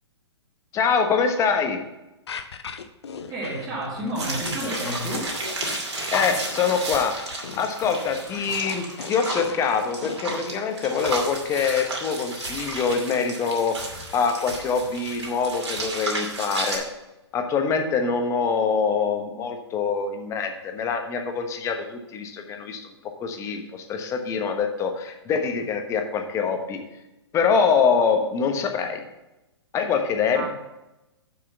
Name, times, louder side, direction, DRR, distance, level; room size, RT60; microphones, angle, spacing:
voice 1, 0.7-1.8 6.1-7.2 7.6-13.8 14.1-16.8 17.3-22.9 23.2-26.8 27.3-29.0 29.7-30.5, left 5 dB, 20° left, 5 dB, 1.1 m, -24 dB
sound 1, 2.3-10.5, left 6 dB, 65° left, 0.8 m, -37 dB
voice 2, 3.3-5.4 30.3-30.5, right 1 dB, 15° right, -9 dB, 2.5 m, -30 dB
sound 2, 4.1-16.8, right 2 dB, 75° right, 2.6 m, -33 dB
7.0 x 6.7 x 5.7 m, 0.97 s
figure-of-eight pair, 120°, 15 cm